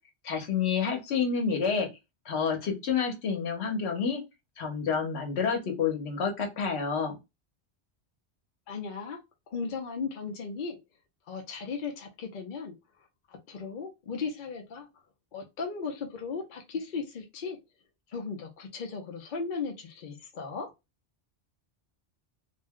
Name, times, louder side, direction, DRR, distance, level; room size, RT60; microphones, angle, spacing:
voice 1, 0.2-1.9 2.3-4.2 4.6-7.2, left 6 dB, 75° left, 3 dB, 1.1 m, -29 dB
voice 2, 8.7-9.2 9.5-10.8 11.3-12.7 13.5-14.9 15.3-17.6 18.1-20.7, left 5 dB, 55° left, 1 dB, 0.7 m, -36 dB
2.5 x 2.2 x 3.5 m, 0.23 s
omnidirectional pair, 1.1 m